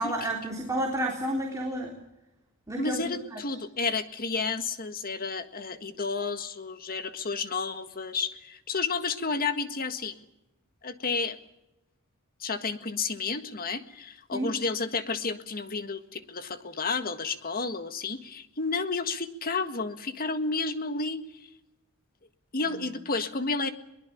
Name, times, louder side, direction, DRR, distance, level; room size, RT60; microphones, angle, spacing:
voice 1, 0.0-1.9 2.7-3.4 14.3-14.5 22.7-22.8, right 1 dB, 15° right, 0 dB, 3.6 m, -31 dB
voice 2, 2.8-10.2 10.8-11.4 12.4-21.2 22.5-23.7, left 4 dB, 45° left, 10 dB, 1.7 m, -31 dB
23.0 x 20.0 x 8.6 m, 0.92 s
head